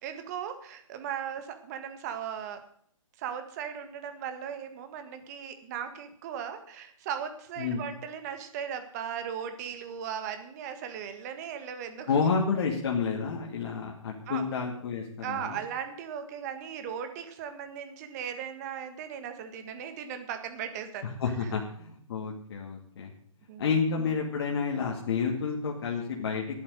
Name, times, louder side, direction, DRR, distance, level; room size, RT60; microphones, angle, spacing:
voice 1, 0.0-2.6 3.2-12.1 14.3-14.5 15.2-21.1 23.5-23.7, right 8 dB, 30° right, 9 dB, 1.7 m, -37 dB
voice 2, 12.1-15.6 21.2-23.1 23.6-26.6, left 5 dB, 50° left, -1 dB, 2.3 m, -30 dB
11.5 x 8.3 x 9.2 m, 0.63 s
hypercardioid pair, 155°, 17 cm